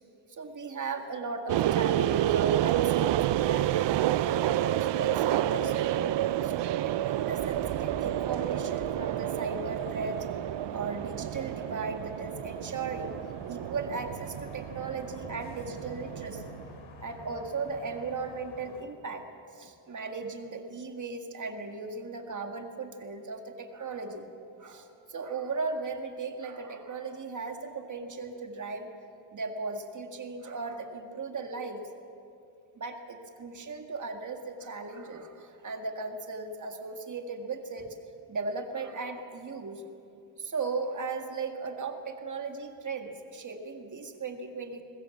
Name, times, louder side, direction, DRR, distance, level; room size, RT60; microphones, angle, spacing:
voice 1, 0.3-3.8 4.2-10.3 10.7-13.1 13.5-16.6 17.0-19.3 19.5-24.3 24.6-28.9 29.3-31.8 32.7-38.0 38.3-39.9 40.4-44.8, right 4 dB, 40° right, 4 dB, 2.0 m, -37 dB
sound 1, 1.5-16.7, right 13 dB, 65° right, 0.6 m, -29 dB
sound 2, 2.4-6.5 7.3-8.9, right 7 dB, 85° right, 2.0 m, -48 dB
sound 3, 8.6-18.8, left 3 dB, 80° left, 2.9 m, -50 dB
22.5 x 20.5 x 7.2 m, 2.6 s
wide cardioid pair, 165°, 46 cm